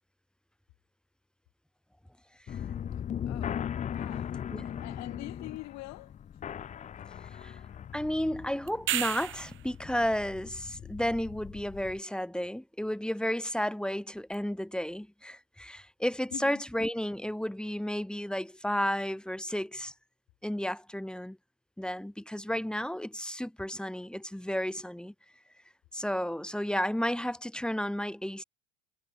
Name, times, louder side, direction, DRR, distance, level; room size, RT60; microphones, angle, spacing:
sound 1, 2.5-12.0, left 9 dB, 25° left, 0.6 m, -39 dB
voice 1, 3.3-3.6 3.9-4.3 4.6-6.2 16.3-16.6, left 21 dB, 55° left, 1.9 m, -44 dB
voice 2, 7.9-19.9 20.4-21.4 21.8-25.1 25.9-28.4, equal, 5° left, 1.7 m, -32 dB
sound 2, 8.7-9.7 14.3-14.4, right 13 dB, 40° right, 0.9 m, -32 dB
hypercardioid pair, 90°, 32 cm